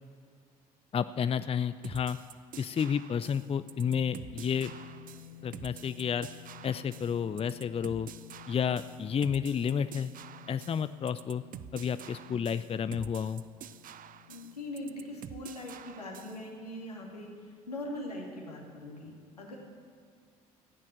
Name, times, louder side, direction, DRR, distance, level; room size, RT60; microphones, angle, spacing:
voice 1, 0.9-2.2 2.6-4.7 5.4-6.3 6.6-8.1 8.5-10.1 10.5-11.4 11.7-13.4, left 7 dB, 30° left, 13 dB, 0.6 m, -31 dB
sound 1, 1.8-16.4, right 10 dB, 45° right, 0.6 m, -48 dB
sound 2, 3.7-18.1, left 11 dB, 65° left, 3.8 m, -53 dB
voice 2, 14.3-19.6, left 1 dB, 90° left, -2 dB, 2.4 m, -41 dB
15.0 x 9.9 x 9.3 m, 2.1 s
figure-of-eight pair, 50°, 19 cm